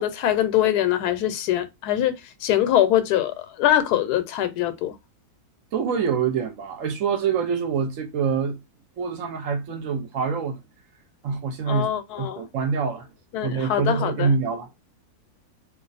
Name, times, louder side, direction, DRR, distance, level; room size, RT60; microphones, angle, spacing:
voice 1, 0.0-4.9 11.7-12.4 13.3-14.3, left 12 dB, 90° left, 1.1 m, -23 dB
voice 2, 5.7-8.6 9.0-10.6 11.2-11.9 12.2-13.1 13.4-14.7, right 6 dB, 65° right, 0.9 m, -25 dB
2.5 x 2.4 x 3.9 m
omnidirectional pair, 1.6 m